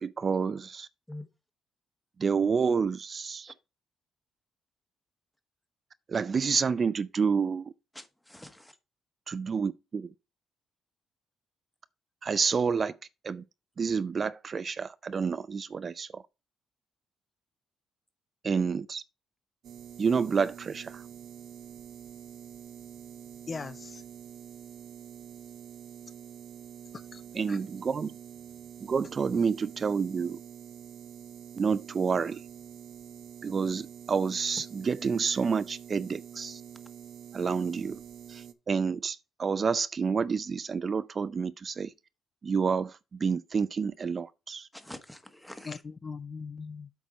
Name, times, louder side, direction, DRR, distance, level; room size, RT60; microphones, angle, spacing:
voice 1, 0.0-0.9 2.2-3.5 6.1-7.7 9.3-10.1 12.2-13.0 13.2-13.4 13.8-16.2 18.4-19.0 20.0-21.0 27.3-28.1 28.8-30.4 31.6-32.4 33.4-36.6 37.3-38.0 38.3-41.9 42.4-44.7, right 5 dB, 40° right, 0.4 m, -29 dB
voice 2, 7.9-8.8 44.7-45.8, left 1 dB, 5° left, 1.4 m, -45 dB
sound 1, 19.6-38.5, right 9 dB, 75° right, 0.8 m, -46 dB
voice 3, 23.5-24.0 26.9-27.2 27.5-27.6 45.6-46.9, left 4 dB, 35° left, 0.5 m, -40 dB
8.2 x 4.6 x 5.1 m
cardioid pair, 90°, 0 cm